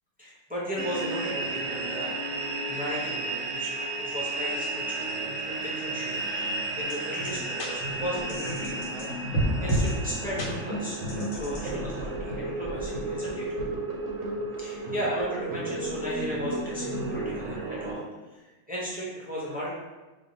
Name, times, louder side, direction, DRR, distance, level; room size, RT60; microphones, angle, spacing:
voice 1, 0.2-2.1 2.7-13.5 14.6-18.1 18.3-19.7, equal, 10° right, -8 dB, 0.5 m, -36 dB
sound 1, 0.8-17.9, right 2 dB, 75° right, 0.9 m, -33 dB
sound 2, 6.9-7.0 7.3-7.4 7.6-7.7 8.3-9.1 9.3-9.9 10.4-10.5 11.1-11.6, right 1 dB, 70° left, 1.1 m, -28 dB
2.7 x 2.2 x 4.1 m, 1.2 s
omnidirectional pair, 1.3 m